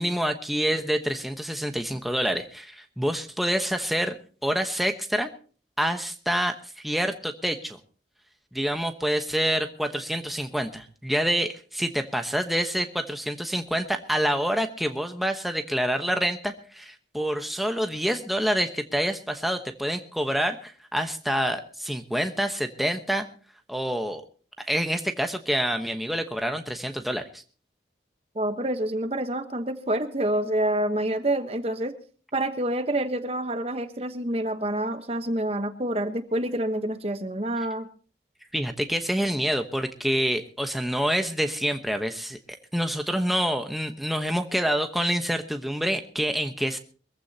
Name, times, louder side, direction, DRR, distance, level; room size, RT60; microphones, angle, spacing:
voice 1, 0.0-4.2 4.4-5.3 5.8-7.8 8.5-23.3 23.7-24.2 24.6-27.4 38.5-42.4 42.7-46.8, equal, ahead, 5 dB, 1.0 m, -27 dB
voice 2, 28.3-31.9 32.3-37.9, right 1 dB, 35° right, 9 dB, 1.1 m, -27 dB
23.0 x 15.0 x 2.8 m, 0.40 s
head